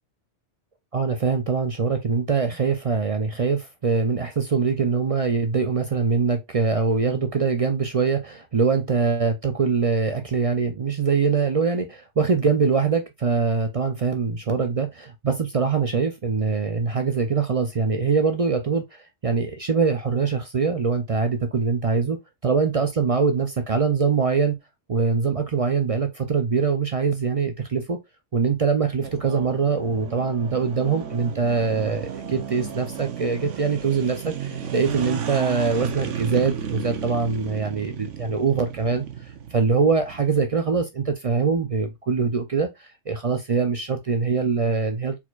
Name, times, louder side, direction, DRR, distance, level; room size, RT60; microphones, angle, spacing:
voice 1, 0.9-22.2 22.4-24.6 24.9-28.0 28.3-39.1 39.5-45.2, right 5 dB, 45° right, 0.4 m, -23 dB
sound 1, 29.0-40.4, right 8 dB, 85° right, 1.1 m, -34 dB
4.4 x 4.2 x 2.3 m
omnidirectional pair, 1.2 m